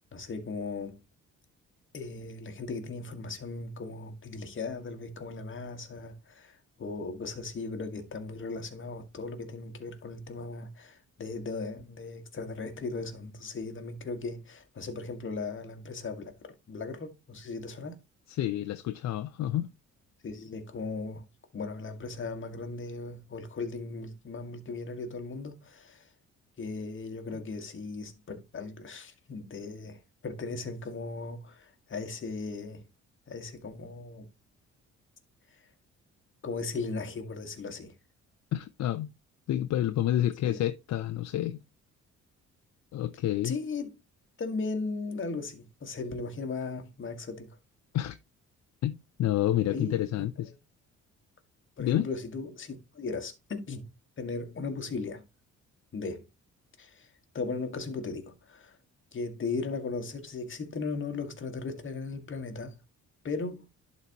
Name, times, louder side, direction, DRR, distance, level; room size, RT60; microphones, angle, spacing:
voice 1, 0.1-1.0 1.9-16.3 16.7-18.0 20.2-21.2 21.5-26.1 26.6-32.8 33.3-34.3 36.4-37.9 40.4-40.6 43.4-43.9 44.4-47.6 49.7-50.3 51.8-53.9 54.2-55.2 55.9-56.2 56.8-57.1 57.3-58.8 59.1-62.8 63.2-63.7, left 3 dB, 40° left, 1.8 m, -37 dB
voice 2, 18.3-19.7 38.5-39.1 39.5-41.6 42.9-43.6 47.9-48.2 48.8-50.5 51.8-52.1, left 12 dB, 65° left, 0.6 m, -29 dB
11.0 x 4.1 x 2.9 m
cardioid pair, 90°, 30 cm